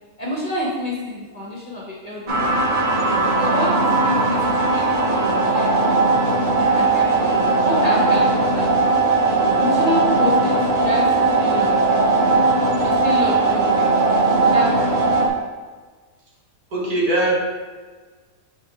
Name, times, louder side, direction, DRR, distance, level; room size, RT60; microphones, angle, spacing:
voice 1, 0.2-2.7 3.4-6.0 6.5-8.9 9.6-12.1 12.8-15.2, left 1 dB, 25° left, -5 dB, 1.3 m, -28 dB
sound 1, 2.3-15.3, right 3 dB, 40° right, 0.7 m, -18 dB
voice 2, 16.7-17.3, right 1 dB, 80° right, -5 dB, 2.1 m, -20 dB
5.7 x 4.5 x 3.8 m, 1.4 s
omnidirectional pair, 1.6 m